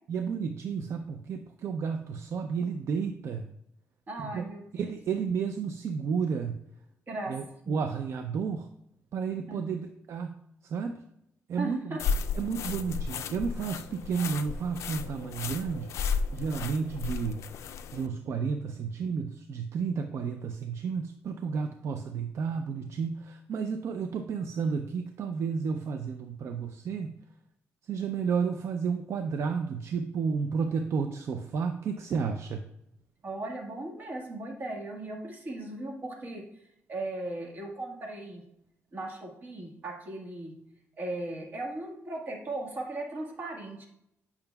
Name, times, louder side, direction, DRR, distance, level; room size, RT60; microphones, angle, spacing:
voice 1, 0.1-3.5 4.2-4.4 4.7-6.6 7.3-8.7 9.1-11.0 11.5-12.0 12.3-15.9 16.3-17.4 17.9-27.2 27.9-32.7, right 6 dB, 60° right, 6 dB, 0.4 m, -32 dB
voice 2, 4.1-4.9 7.1-7.3 7.6-7.8 9.5-9.6 11.6-12.0 33.2-36.4 36.9-38.4 38.9-40.5 41.0-43.9, right 2 dB, 40° right, 0 dB, 1.5 m, -37 dB
sound 1, 12.0-18.1, left 5 dB, 70° left, 0.3 m, -34 dB
8.7 x 5.7 x 2.3 m, 0.78 s
cardioid pair, 135°, 5 cm